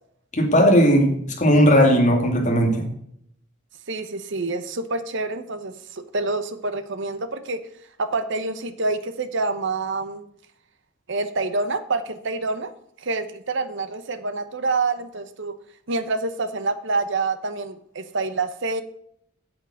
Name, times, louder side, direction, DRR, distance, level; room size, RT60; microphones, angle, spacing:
voice 1, 0.3-2.8, equal, 35° left, 1 dB, 2.5 m, -17 dB
voice 2, 3.9-7.6 8.0-10.2 11.1-12.7 13.0-15.5 15.9-18.8, right 3 dB, 65° right, 10 dB, 0.9 m, -27 dB
8.6 x 7.3 x 6.4 m, 0.69 s
head